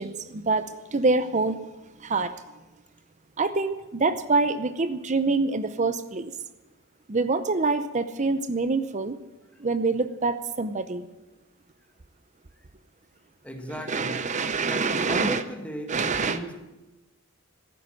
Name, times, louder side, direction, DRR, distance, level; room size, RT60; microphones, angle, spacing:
voice 1, 0.0-1.6 2.0-2.3 3.4-6.3 7.1-9.2 9.6-11.1 13.7-15.4 15.9-16.4, right 3 dB, 35° right, 12 dB, 0.6 m, -26 dB
voice 2, 13.4-14.2 14.7-16.5, equal, 5° left, 3 dB, 1.8 m, -35 dB
15.0 x 9.4 x 7.7 m, 1.1 s
head